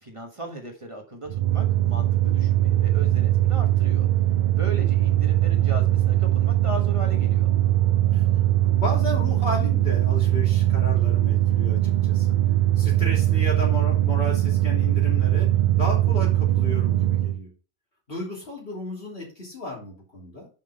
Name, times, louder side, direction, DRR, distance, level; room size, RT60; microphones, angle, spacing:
voice 1, 0.0-4.1 4.5-7.5, right 1 dB, 30° right, 2 dB, 1.3 m, -37 dB
sound 1, 1.3-17.4, right 14 dB, 55° right, 0.5 m, -21 dB
voice 2, 8.6-12.4 12.8-17.5 18.1-20.5, left 2 dB, 65° left, -3 dB, 3.4 m, -34 dB
5.9 x 5.3 x 5.2 m, 0.34 s
omnidirectional pair, 1.1 m